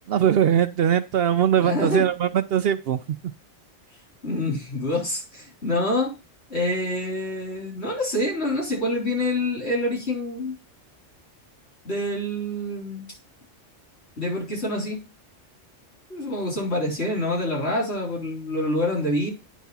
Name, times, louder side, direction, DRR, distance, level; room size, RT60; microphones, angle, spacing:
voice 1, 0.1-3.0, right 9 dB, 65° right, 11 dB, 0.7 m, -21 dB
voice 2, 1.6-2.1 4.2-6.1 6.5-10.5 11.8-13.1 14.2-15.0 16.1-19.3, left 1 dB, 65° left, -1 dB, 4.0 m, -26 dB
9.3 x 3.5 x 5.5 m, 0.29 s
omnidirectional pair, 1.2 m